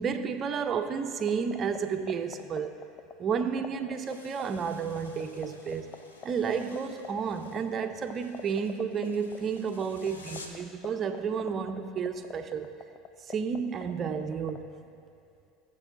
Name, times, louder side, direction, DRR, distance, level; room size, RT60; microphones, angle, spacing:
voice 1, 0.0-2.7 3.2-5.9 6.2-12.7 13.2-14.7, right 6 dB, 35° right, 7 dB, 0.7 m, -31 dB
sound 1, 1.2-14.6, left 9 dB, 45° left, 0.6 m, -40 dB
sound 2, 3.9-10.7, left 2 dB, 85° left, 1.2 m, -52 dB
19.5 x 7.4 x 2.7 m, 2.5 s
hypercardioid pair, 80°, 0 cm